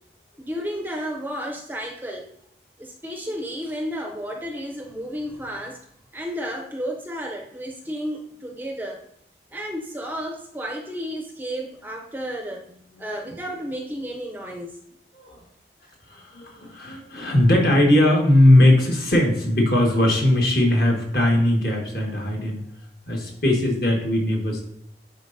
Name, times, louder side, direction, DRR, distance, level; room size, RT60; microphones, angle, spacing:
voice 1, 0.4-2.3 2.8-5.8 6.1-9.0 9.5-12.7 13.0-14.7, equal, 10° right, 1 dB, 0.5 m, -32 dB
voice 2, 16.1-22.6 23.1-24.6, left 1 dB, 55° left, 0 dB, 1.5 m, -19 dB
9.7 x 4.3 x 2.6 m, 0.73 s
head